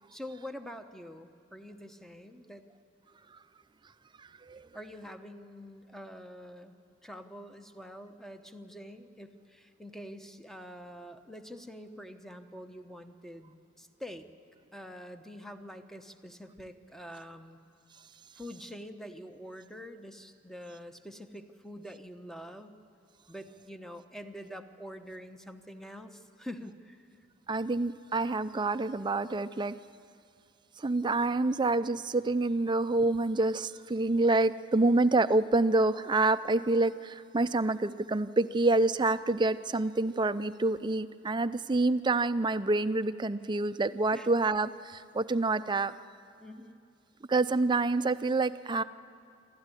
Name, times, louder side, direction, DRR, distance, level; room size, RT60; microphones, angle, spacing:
voice 1, 0.1-2.7 4.7-6.7 7.0-14.3 14.7-17.6 18.4-22.8 23.3-27.1 44.1-44.3 46.4-46.8, equal, ahead, 7 dB, 0.9 m, -46 dB
voice 2, 27.5-29.8 30.8-45.9 47.3-48.8, right 2 dB, 25° right, 13 dB, 0.5 m, -27 dB
27.0 x 13.0 x 9.9 m, 2.4 s
head